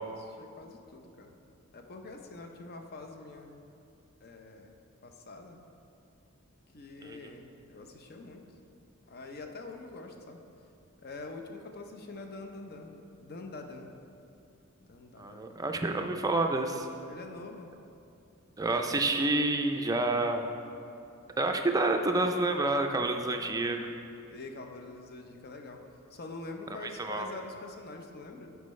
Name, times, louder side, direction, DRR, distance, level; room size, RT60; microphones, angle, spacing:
voice 1, 0.1-1.3 1.7-3.6 4.2-5.6 6.7-8.5 9.1-10.4 11.0-13.9 14.8-15.6 17.1-17.9 24.3-25.8 26.1-28.6, left 3 dB, 45° left, 4 dB, 0.6 m, -45 dB
voice 2, 15.2-16.9 18.6-20.5 21.4-23.8 27.0-27.3, right 2 dB, 15° right, 4 dB, 0.4 m, -28 dB
11.5 x 4.6 x 3.2 m, 2.6 s
head